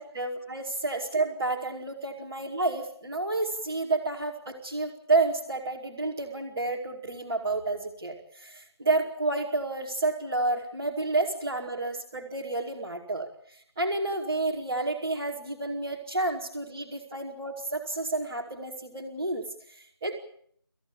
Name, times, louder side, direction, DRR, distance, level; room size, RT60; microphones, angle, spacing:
voice 1, 0.1-13.3 13.8-20.1, right 2 dB, 5° right, -8 dB, 2.4 m, -30 dB
26.5 x 16.0 x 8.9 m, 0.64 s
figure-of-eight pair, 180°, 13 cm